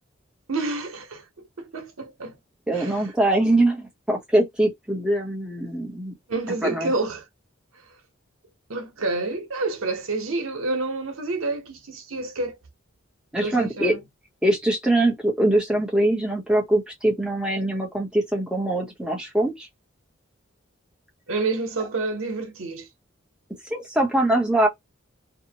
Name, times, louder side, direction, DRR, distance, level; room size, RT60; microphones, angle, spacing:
voice 1, 0.5-1.2 1.6-2.4 2.7-3.0 6.3-7.2 8.7-12.5 13.4-14.0 21.3-22.9, right 3 dB, 90° right, 0.9 m, -28 dB
voice 2, 2.7-6.1 6.6-6.9 13.3-13.9 14.4-19.7 23.7-24.7, right 1 dB, 5° right, 0.8 m, -22 dB
2.7 x 2.1 x 2.8 m
head